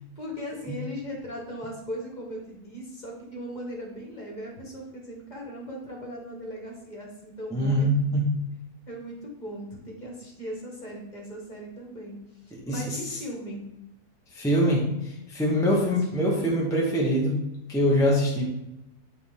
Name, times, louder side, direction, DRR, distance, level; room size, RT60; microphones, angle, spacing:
voice 1, 0.1-8.2 8.9-13.6 15.5-16.5, equal, 30° left, -2 dB, 1.7 m, -38 dB
voice 2, 7.5-8.2 12.5-13.2 14.3-17.4 17.7-18.4, equal, 5° left, -3 dB, 0.9 m, -24 dB
8.8 x 4.2 x 3.6 m, 0.91 s
omnidirectional pair, 1.6 m